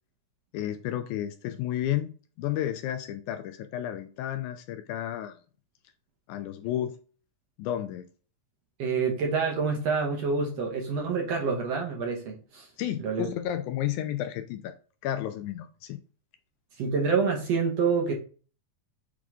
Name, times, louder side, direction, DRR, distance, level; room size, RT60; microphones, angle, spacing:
voice 1, 0.5-5.4 6.3-7.0 7.6-8.0 12.8-14.7 15.0-16.0, left 11 dB, 80° left, 8 dB, 1.8 m, -32 dB
voice 2, 8.8-12.7 13.0-13.3 16.8-18.1, right 5 dB, 65° right, 1 dB, 1.8 m, -27 dB
7.5 x 3.7 x 3.5 m, 0.39 s
omnidirectional pair, 3.8 m